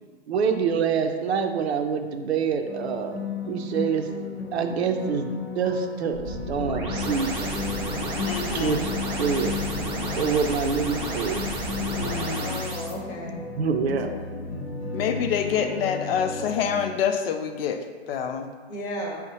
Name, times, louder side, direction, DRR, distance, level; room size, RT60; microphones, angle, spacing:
voice 1, 0.3-4.1 4.5-7.5 8.5-8.9 9.2-9.6 10.2-11.5 13.6-14.1, right 6 dB, 85° right, 6 dB, 0.5 m, -26 dB
sound 1, 2.7-16.8, left 4 dB, 80° left, 0.9 m, -34 dB
sound 2, 6.1-12.9, right 1 dB, 15° right, 0.7 m, -31 dB
voice 2, 8.2-8.8 10.7-10.8 11.9-12.6 14.1-14.4 14.9-17.8 18.1-18.5, left 7 dB, 65° left, 6 dB, 0.5 m, -27 dB
voice 3, 12.3-13.4 18.7-19.2, left 1 dB, 25° left, -2 dB, 0.8 m, -35 dB
6.0 x 2.1 x 2.7 m, 1.5 s
hypercardioid pair, 120°, 31 cm